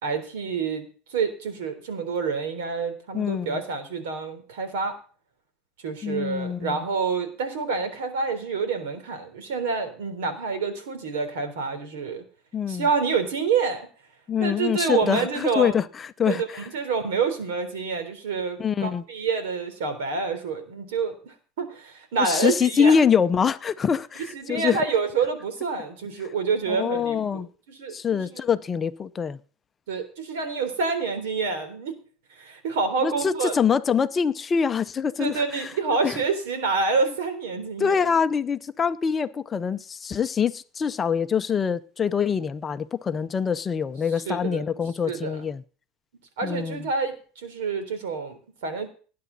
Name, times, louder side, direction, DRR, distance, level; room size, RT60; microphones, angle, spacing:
voice 1, 0.0-0.9 1.1-5.0 5.8-12.2 12.7-13.9 14.4-15.7 16.3-23.0 24.3-27.5 27.8-28.2 29.9-31.9 32.4-33.5 35.2-38.1 44.3-44.6 45.0-45.5 46.4-48.9, right 5 dB, 85° right, 3.6 m, -27 dB
voice 2, 3.1-3.6 6.0-6.8 12.5-12.9 14.3-16.4 18.6-19.0 22.2-24.8 26.7-27.5 27.9-29.4 33.0-35.7 36.0-36.2 37.8-45.6 46.4-46.9, left 7 dB, 20° left, 0.6 m, -24 dB
18.5 x 9.5 x 4.0 m
supercardioid pair, 145°, 0 cm